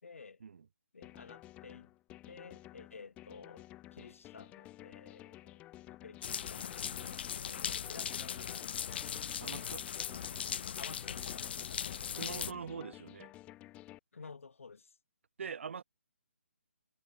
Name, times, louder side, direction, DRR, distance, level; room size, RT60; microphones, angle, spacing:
voice 1, 0.0-0.4 0.9-1.9 2.3-3.7 3.9-6.9 7.4-9.2 10.8-11.9 12.2-12.5 14.1-15.0, left 4 dB, 70° left, 2.8 m, -52 dB
sound 1, 1.0-14.0, left 16 dB, 15° left, 4.8 m, -53 dB
sound 2, 6.2-12.5, left 8 dB, 45° left, 0.4 m, -39 dB
voice 2, 9.4-9.9 12.1-13.3 15.4-15.8, right 6 dB, 60° right, 1.0 m, -43 dB
hypercardioid pair, 150°, 7 cm